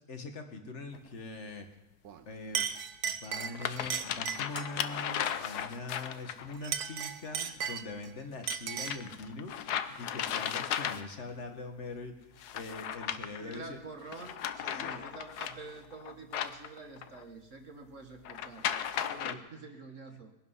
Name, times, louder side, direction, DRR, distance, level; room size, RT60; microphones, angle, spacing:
voice 1, 0.1-1.7 2.3-2.7 3.0-9.5 9.9-13.8 14.7-15.1 19.2-19.4, left 3 dB, 45° left, 5 dB, 1.8 m, -43 dB
sound 1, 0.9-1.0 2.6-2.7 3.3-6.5 8.4-11.3 12.4-13.6 14.1-17.2 18.2-19.3, left 9 dB, 80° left, 1.3 m, -36 dB
Chink clink, 2.0-2.2 2.5-4.8 6.5-8.1 8.5-9.1, right 8 dB, 70° right, 1.4 m, -36 dB
voice 2, 13.4-18.7 19.0-20.3, right 3 dB, 50° right, 3 dB, 1.6 m, -47 dB
21.0 x 10.5 x 5.7 m, 1.0 s
omnidirectional pair, 1.7 m